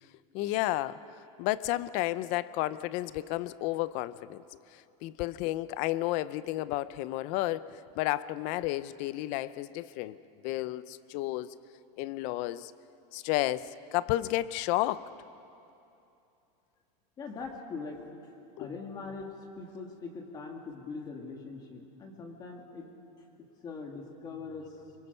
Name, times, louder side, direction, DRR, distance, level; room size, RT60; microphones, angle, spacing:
voice 1, 0.3-1.0 1.4-4.4 4.7-10.2 10.4-11.5 12.0-12.7 13.1-15.1 18.6-18.7, left 16 dB, 40° left, 17 dB, 0.5 m, -32 dB
voice 2, 17.2-18.0 18.6-22.9 23.6-24.7, left 4 dB, 20° left, 2 dB, 2.1 m, -42 dB
25.5 x 23.5 x 5.6 m, 2.8 s
supercardioid pair, 165°, 19 cm